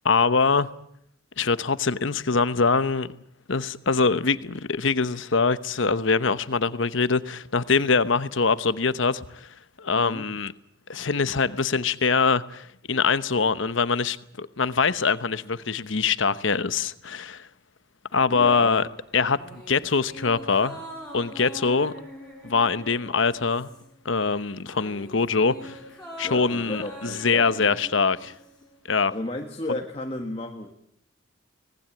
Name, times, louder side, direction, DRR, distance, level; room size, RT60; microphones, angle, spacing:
voice 1, 0.0-0.7 1.4-3.1 3.5-9.5 9.8-10.5 10.9-17.5 18.1-18.9 19.1-20.8 21.1-21.9 22.4-23.7 24.0-25.8 26.2-28.3 28.9-29.1, left 4 dB, 70° left, 1.0 m, -23 dB
voice 2, 9.9-10.2 18.3-18.8 25.6-25.8 26.2-27.7 29.1-30.7, left 1 dB, 30° left, 1.6 m, -34 dB
sound 1, 19.3-24.1 24.3-28.7 29.0-29.1, equal, 5° left, 7.2 m, -43 dB
24.5 x 19.0 x 8.7 m
head